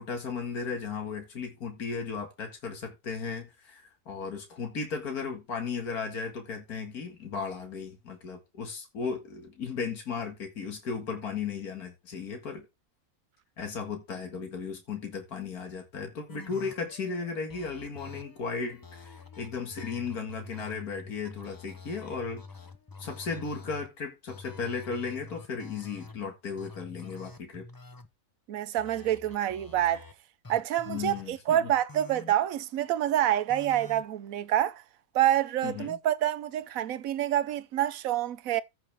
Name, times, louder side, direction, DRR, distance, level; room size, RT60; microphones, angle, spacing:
voice 1, 0.0-12.7 13.6-22.4 23.0-27.7 30.9-31.7 35.6-36.0, left 5 dB, 75° left, 2.3 m, -35 dB
sound 1, 16.3-23.9 24.3-26.2 26.6-28.1 28.8-30.1 30.4-31.2 31.9-32.3 33.5-34.0, left 3 dB, 20° left, 0.6 m, -47 dB
voice 2, 28.5-30.0 30.5-34.8 35.1-38.6, right 12 dB, 70° right, 1.1 m, -27 dB
14.5 x 5.8 x 3.5 m
omnidirectional pair, 1.6 m